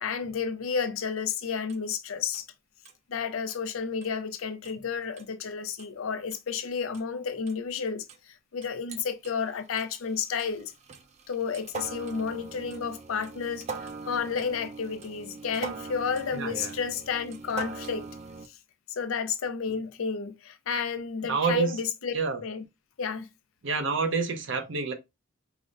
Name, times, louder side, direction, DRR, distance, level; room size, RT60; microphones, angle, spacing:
voice 1, 0.0-2.5 3.1-10.7 11.3-13.7 14.1-18.1 18.9-22.1 22.4-22.6 23.0-23.3, left 6 dB, 85° left, 0.5 m, -31 dB
sound 1, 1.7-1.8 2.3-2.4 2.9-3.0 3.5-3.6 4.0-4.1 4.7-4.8 5.2-5.3 5.8-5.9 6.3-6.4 6.9-7.0 7.5-7.6 8.1-8.2 8.6-9.3 9.8-18.5, right 4 dB, 35° right, 0.3 m, -41 dB
voice 2, 16.3-16.7 21.2-21.8 22.1-22.4 23.6-24.9, right 4 dB, 60° right, 0.7 m, -28 dB
4.9 x 2.1 x 2.5 m
head